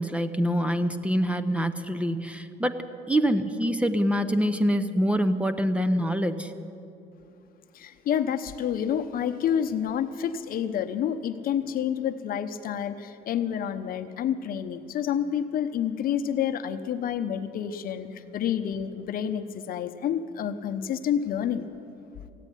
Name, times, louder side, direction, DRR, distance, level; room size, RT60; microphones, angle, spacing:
voice 1, 0.0-2.8 3.1-6.5, equal, 5° right, 10 dB, 0.8 m, -25 dB
voice 2, 7.7-21.7, left 9 dB, 60° left, 9 dB, 0.8 m, -29 dB
15.0 x 9.1 x 9.9 m, 2.6 s
cardioid pair, 110°, 17 cm